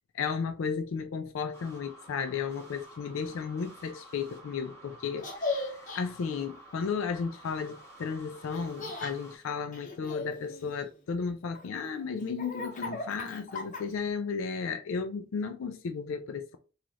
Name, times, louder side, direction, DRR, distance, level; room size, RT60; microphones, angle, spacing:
voice 1, 0.1-16.6, left 5 dB, 65° left, 0.4 m, -34 dB
sound 1, 1.5-9.4, right 1 dB, 10° left, 0.9 m, -51 dB
Laughter, 5.2-6.0 8.5-9.1 9.7-11.0 11.5-14.1, left 3 dB, 35° left, 0.7 m, -37 dB
3.1 x 2.4 x 3.9 m
head